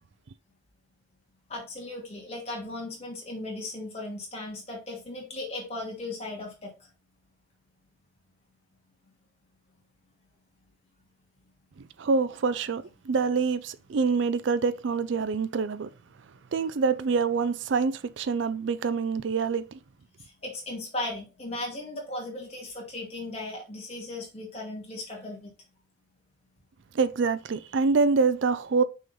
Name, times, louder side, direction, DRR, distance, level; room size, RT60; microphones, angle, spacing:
voice 1, 1.5-6.7 20.4-25.5, left 2 dB, 30° left, 2.2 m, -37 dB
voice 2, 11.8-15.9 16.5-19.8 26.9-28.8, right 4 dB, 60° right, 0.4 m, -26 dB
6.2 x 3.8 x 4.2 m
head